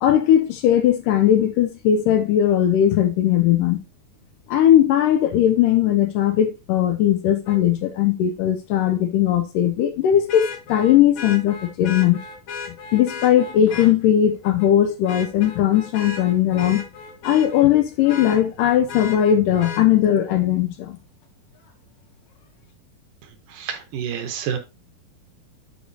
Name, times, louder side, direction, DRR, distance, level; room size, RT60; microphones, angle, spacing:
voice 1, 0.0-3.8 4.5-12.2 12.9-16.8 17.2-21.0, left 11 dB, 80° left, 2.0 m, -18 dB
Vehicle horn car horn honking, 7.5-7.6 10.3-13.9 14.4-14.7 15.0-17.7 18.0-19.8 21.7-21.8, left 5 dB, 55° left, 1.9 m, -35 dB
voice 2, 23.5-24.6, right 8 dB, 70° right, 2.4 m, -28 dB
11.0 x 4.9 x 2.7 m
omnidirectional pair, 4.2 m